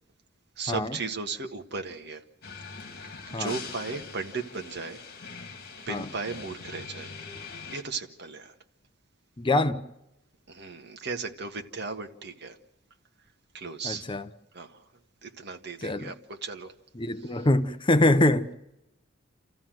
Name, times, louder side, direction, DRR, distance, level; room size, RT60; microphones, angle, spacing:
voice 1, 0.6-2.2 2.9-3.1 3.4-5.0 5.8-7.1 7.7-8.5 10.5-12.6 13.5-14.1 14.5-14.9 15.2-16.7 17.2-17.5, right 4 dB, 60° right, 1.6 m, -36 dB
sound 1, 2.4-7.8, left 5 dB, 50° left, 2.5 m, -42 dB
voice 2, 9.4-9.8 13.8-14.3 15.8-16.1 17.0-18.5, left 1 dB, 25° left, 0.8 m, -24 dB
28.5 x 14.0 x 7.7 m
head